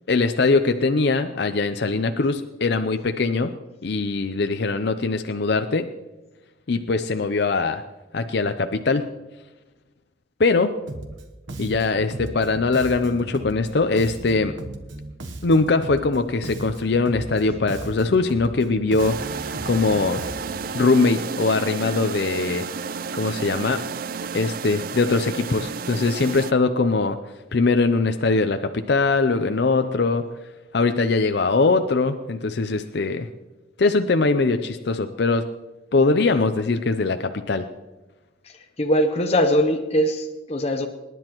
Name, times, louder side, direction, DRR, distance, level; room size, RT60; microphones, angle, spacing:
voice 1, 0.1-3.5 3.8-5.9 6.7-7.8 8.1-9.1 10.4-10.7 11.6-14.5 15.4-20.2 20.7-22.7 23.1-23.8 24.3-27.2 27.5-30.3 30.7-33.3 33.8-35.4 35.9-37.6, left 3 dB, 60° left, 7 dB, 0.5 m, -21 dB
Bass guitar, 10.9-11.2 11.5-16.2 16.4-20.8, right 2 dB, 80° right, 1.1 m, -36 dB
sound 1, 19.0-26.5, right 5 dB, 50° right, 0.3 m, -32 dB
voice 2, 38.8-40.9, equal, 35° left, 4 dB, 0.8 m, -21 dB
26.0 x 10.5 x 3.0 m, 1.1 s
head